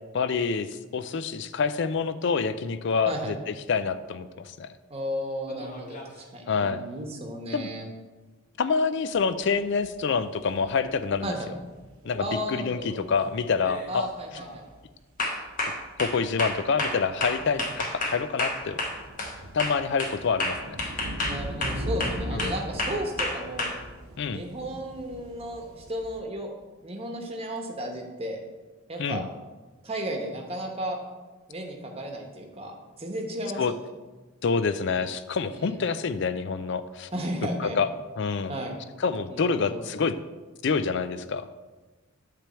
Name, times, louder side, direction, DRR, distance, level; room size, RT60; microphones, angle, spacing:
voice 1, 0.1-3.4 3.7-4.7 6.5-6.8 7.5-7.7 8.6-11.4 12.0-14.1 16.0-18.8 19.5-20.8 22.3-22.5 24.2-24.4 29.0-29.3 33.6-33.7 34.4-37.1 37.6-37.9 38.2-38.5 39.0-40.2 40.6-41.5, left 5 dB, 55° left, 12 dB, 0.4 m, -27 dB
voice 2, 4.9-7.8 11.2-11.5 12.2-12.9 13.9-14.6 17.4-17.7 21.2-23.7 24.3-26.5 26.8-28.4 28.9-29.3 29.8-31.0 31.5-33.8 35.5-35.9 37.1-37.8 38.5-38.8 39.3-39.8, equal, 30° right, 2 dB, 1.0 m, -34 dB
sound 1, 5.5-6.2 10.4-10.5 12.0-12.3 12.8-13.1 13.6-13.9 14.4-14.6 15.2-19.3 19.6-23.7, left 2 dB, 40° left, 1.1 m, -31 dB
sound 2, 9.2-9.3 9.5-10.0 10.4-12.4 13.0-13.1 13.3-13.4 13.7-13.9 14.4-15.2 15.5-26.2, equal, 85° right, 1.0 m, -39 dB
9.2 x 3.4 x 6.9 m, 1.3 s
head